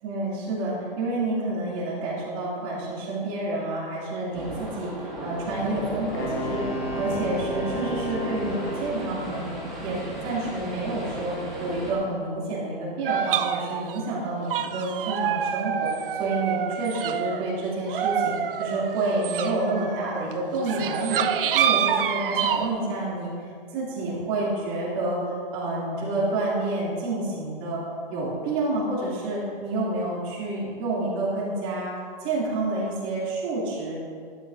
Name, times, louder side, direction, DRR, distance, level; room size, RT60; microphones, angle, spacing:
voice 1, 0.0-9.5 9.8-21.3 21.5-23.3 23.7-25.2 25.5-27.8 28.1-31.9 32.2-33.9, right 2 dB, 25° right, -6 dB, 2.4 m, -29 dB
sound 1, 4.3-11.9, right 1 dB, ahead, 1.6 m, -35 dB
Wind instrument woodwind instrument, 6.1-9.3, left 1 dB, 25° left, 0.8 m, -33 dB
sound 2, 13.0-17.5 17.9-22.7, right 8 dB, 65° right, 0.6 m, -27 dB
12.0 x 9.9 x 2.5 m, 2.1 s
hypercardioid pair, 170°, 29 cm